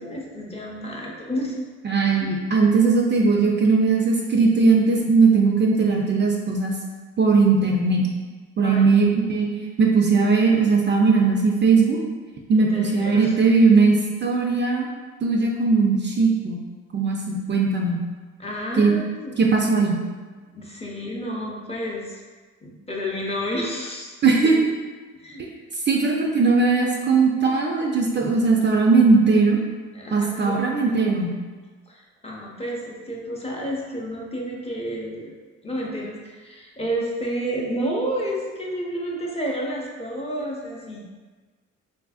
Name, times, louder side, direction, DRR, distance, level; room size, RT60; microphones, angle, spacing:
voice 1, 0.0-1.6 2.2-2.3 8.6-9.1 12.7-13.3 18.4-19.3 20.5-22.2 22.6-24.1 24.4-24.6 25.2-25.5 26.0-26.1 29.9-30.6 30.8-31.3 31.9-35.3 35.6-41.1, equal, 20° left, -3 dB, 0.6 m, -30 dB
voice 2, 1.8-6.8 7.2-8.0 8.6-9.5 9.8-12.0 12.5-14.9 15.2-16.6 16.9-18.0 18.8-18.9 19.4-20.0 24.2-24.6 25.9-29.6 30.1-31.3, right 4 dB, 40° right, -1 dB, 0.4 m, -19 dB
3.3 x 2.5 x 2.3 m, 1.4 s
cardioid pair, 90°, 30 cm